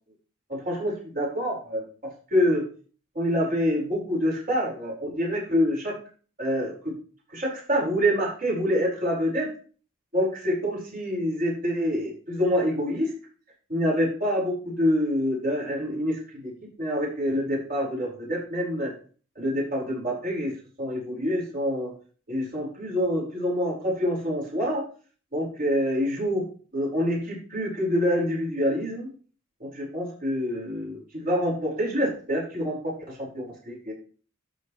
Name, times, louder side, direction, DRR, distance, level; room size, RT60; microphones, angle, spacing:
voice 1, 0.5-1.8 2.3-2.6 3.2-6.0 6.4-6.9 7.3-9.5 10.1-13.1 13.7-16.5 16.8-18.9 19.4-21.9 22.3-24.8 25.3-26.4 26.7-29.1 29.6-33.9, equal, 45° right, -4 dB, 5.1 m, -26 dB
12.0 x 6.7 x 3.2 m, 0.41 s
head